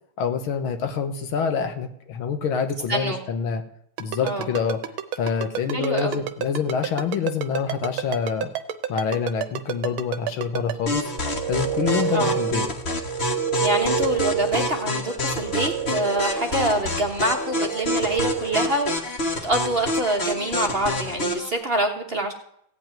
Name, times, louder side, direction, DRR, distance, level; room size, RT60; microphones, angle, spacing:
voice 1, 0.2-3.6 4.0-4.8 5.1-8.5 8.9-11.1 11.5-12.7, left 6 dB, 80° left, 7 dB, 2.0 m, -26 dB
voice 2, 2.9-3.2 4.2-4.5 5.7-6.2 12.1-12.4 13.6-22.3, right 1 dB, 35° right, 2 dB, 1.2 m, -26 dB
Ringtone, 4.0-10.7, right 10 dB, 80° right, 1.6 m, -28 dB
sound 1, 10.9-21.5, left 2 dB, 35° left, 1.5 m, -28 dB
sound 2, 11.0-18.9, right 9 dB, 60° right, 1.5 m, -29 dB
15.5 x 5.3 x 9.0 m, 0.72 s
omnidirectional pair, 2.3 m